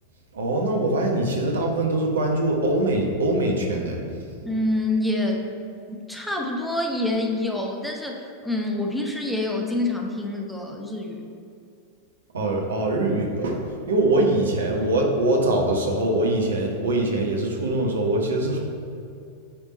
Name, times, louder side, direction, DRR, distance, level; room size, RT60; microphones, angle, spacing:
voice 1, 0.3-4.0 12.3-18.6, right 1 dB, 65° right, 1 dB, 1.1 m, -23 dB
voice 2, 4.4-5.4 6.1-11.2, left 2 dB, ahead, 0 dB, 0.9 m, -26 dB
8.9 x 3.5 x 4.1 m, 2.5 s
figure-of-eight pair, 90°, 0 cm